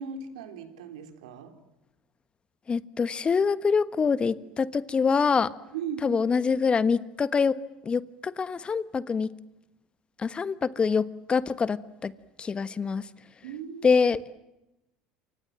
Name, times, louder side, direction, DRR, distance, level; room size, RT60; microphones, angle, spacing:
voice 1, 0.0-1.5 5.7-6.2 13.4-14.0, right 7 dB, 80° right, 6 dB, 3.6 m, -37 dB
voice 2, 2.7-5.5 6.0-7.6 7.8-9.3 10.2-12.1 12.4-13.0 13.8-14.2, left 5 dB, 30° left, 15 dB, 1.3 m, -25 dB
28.5 x 25.5 x 7.6 m, 0.96 s
hypercardioid pair, 75°, 4 cm